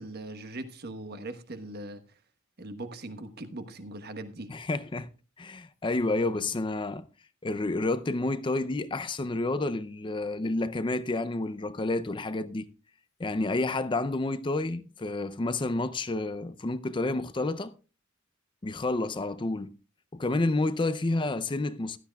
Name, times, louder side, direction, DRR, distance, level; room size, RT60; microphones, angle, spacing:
voice 1, 0.0-2.0 2.6-4.5, right 2 dB, 50° right, 1.1 m, -40 dB
voice 2, 4.5-5.1 5.4-7.0 7.4-12.7 13.2-17.7 18.6-19.7 20.1-22.0, left 2 dB, 25° left, 0.5 m, -29 dB
16.0 x 12.5 x 2.3 m
head